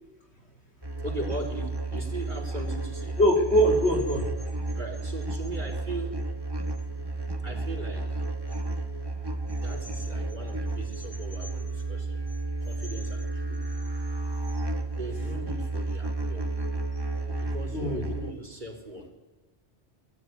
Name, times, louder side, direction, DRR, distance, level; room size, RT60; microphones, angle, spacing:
sound 1, 0.8-18.3, right 2 dB, 20° right, 1.4 m, -32 dB
voice 1, 1.0-3.2 4.8-6.1 7.4-8.1 9.5-12.2 12.6-13.7 14.9-16.6 17.4-19.1, right 2 dB, 40° right, 1 dB, 3.9 m, -39 dB
voice 2, 3.2-4.2 17.7-18.1, equal, 65° left, 2 dB, 3.2 m, -22 dB
20.0 x 13.5 x 9.6 m, 1.2 s
omnidirectional pair, 1.2 m